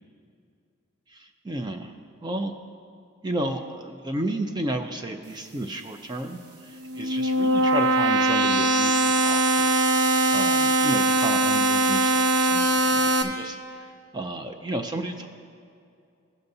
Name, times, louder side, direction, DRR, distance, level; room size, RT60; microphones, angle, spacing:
voice 1, 1.1-1.9 2.2-2.5 3.2-9.7 10.3-15.3, right 1 dB, 20° right, 5 dB, 0.4 m, -32 dB
sound 1, 6.7-13.2, right 2 dB, 75° right, 0.7 m, -21 dB
16.0 x 6.7 x 2.7 m, 2.4 s
head